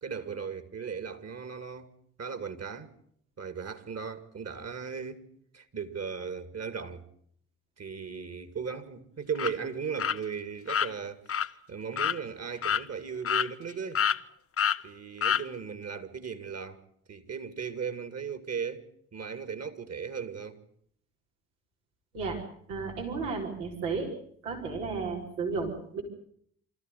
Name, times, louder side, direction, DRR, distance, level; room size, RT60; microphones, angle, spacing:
voice 1, 0.0-1.9 2.2-2.9 3.4-5.2 5.5-7.1 7.8-14.0 14.8-16.8 17.1-18.8 19.1-20.6, right 6 dB, 40° right, 2.7 m, -37 dB
sound 1, 9.3-9.5 10.0-10.2 10.7-10.9 11.3-11.5 12.0-12.2 12.6-12.8 13.2-13.7 13.9-14.2 14.6-14.8 15.2-15.4, left 8 dB, 35° left, 0.9 m, -27 dB
voice 2, 22.7-24.1 24.4-26.0, right 4 dB, 80° right, 4.6 m, -33 dB
25.5 x 14.5 x 9.5 m
hypercardioid pair, 50°, 40 cm